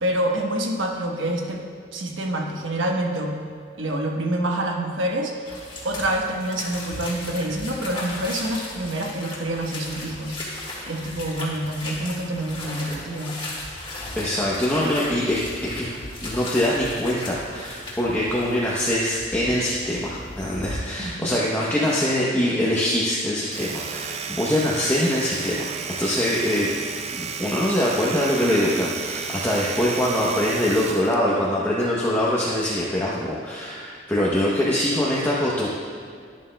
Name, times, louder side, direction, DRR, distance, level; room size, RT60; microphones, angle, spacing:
voice 1, 0.0-1.6 1.9-3.4 3.8-13.4 21.0-21.4, right 1 dB, 90° right, 1 dB, 1.1 m, -27 dB
sound 1, 5.5-20.8, left 1 dB, 25° left, 1.8 m, -36 dB
voice 2, 14.2-15.4 15.7-15.9 16.2-26.7 27.1-35.7, left 1 dB, 10° left, -6 dB, 0.8 m, -23 dB
Domestic sounds home sounds, 23.4-31.2, right 6 dB, 35° right, 0.4 m, -33 dB
11.0 x 11.0 x 2.2 m, 2.2 s
head